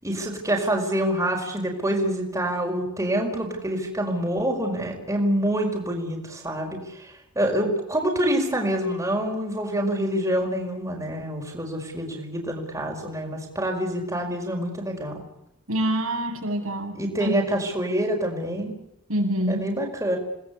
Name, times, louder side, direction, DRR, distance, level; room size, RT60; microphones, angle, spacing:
voice 1, 0.0-15.1 16.9-18.7 19.5-20.2, right 1 dB, 15° right, 0 dB, 5.2 m, -26 dB
voice 2, 15.7-17.3 19.1-19.7, right 1 dB, 80° right, 1 dB, 7.7 m, -26 dB
28.5 x 20.0 x 8.4 m, 0.81 s
head